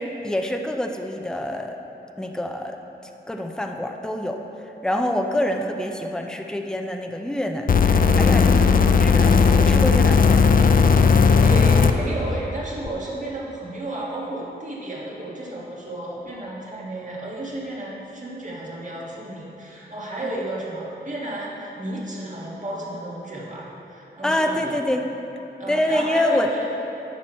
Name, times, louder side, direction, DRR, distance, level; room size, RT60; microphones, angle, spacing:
voice 1, 0.0-1.8 2.2-2.8 3.3-4.4 4.8-10.6 24.2-25.1 25.7-26.5, left 1 dB, 5° left, 4 dB, 0.6 m, -26 dB
sound 1, 7.7-11.9 12.9-13.0, left 5 dB, 50° left, 0.4 m, -16 dB
voice 2, 11.4-24.8 25.6-26.7, right 1 dB, 45° right, -5 dB, 1.8 m, -32 dB
9.9 x 6.1 x 4.3 m, 3.0 s
wide cardioid pair, 80°, 18 cm